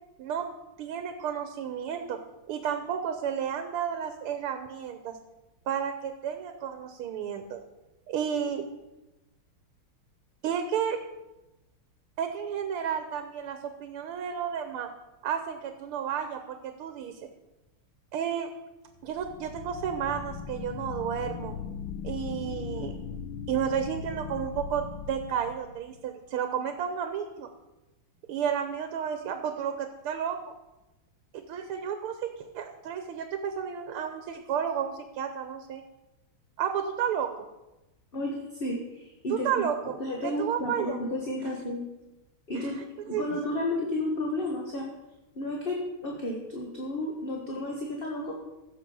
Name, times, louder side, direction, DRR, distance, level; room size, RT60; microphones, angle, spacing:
voice 1, 0.8-2.2 2.5-5.2 5.7-7.6 8.1-8.7 10.4-11.0 12.2-14.9 15.2-17.2 18.1-18.5 19.0-21.5 22.0-23.0 23.5-27.5 28.3-30.4 31.3-35.8 36.6-37.3 39.3-40.0 40.2-41.0 42.5-42.7 43.1-43.2, right 8 dB, 85° right, 8 dB, 1.8 m, -32 dB
sound 1, 19.0-26.0, left 7 dB, 75° left, 1.6 m, -39 dB
voice 2, 38.1-39.5 39.8-41.8 42.5-42.8 43.1-44.9 45.3-48.3, left 1 dB, 30° left, -1 dB, 1.4 m, -32 dB
15.0 x 6.6 x 5.5 m, 1.0 s
omnidirectional pair, 2.3 m